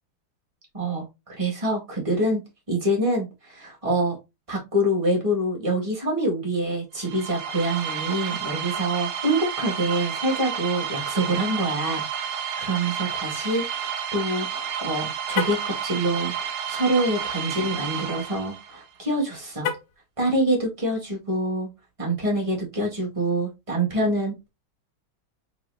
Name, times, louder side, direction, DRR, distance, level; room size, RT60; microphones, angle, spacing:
voice 1, 0.7-1.1 1.4-2.4 2.7-4.1 4.5-19.7 20.2-21.7 22.0-24.5, right 1 dB, 15° right, -2 dB, 1.7 m, -26 dB
sound 1, 7.0-18.8, right 8 dB, 85° right, 1.7 m, -31 dB
Car, 15.3-15.7 19.6-20.1, left 8 dB, 70° left, 1.2 m, -29 dB
4.4 x 4.2 x 2.6 m, 0.24 s
omnidirectional pair, 2.2 m